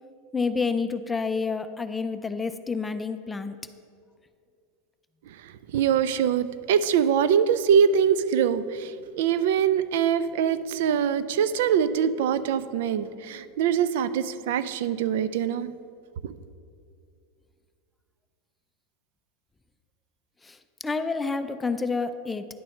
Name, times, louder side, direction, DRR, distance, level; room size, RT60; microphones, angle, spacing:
voice 1, 0.3-3.6 20.4-20.6 20.8-22.5, left 4 dB, 10° left, 10 dB, 0.4 m, -28 dB
voice 2, 5.4-15.7 16.2-16.3, right 8 dB, 75° right, 14 dB, 0.4 m, -23 dB
10.0 x 4.2 x 6.3 m, 2.4 s
supercardioid pair, 120°, 0 cm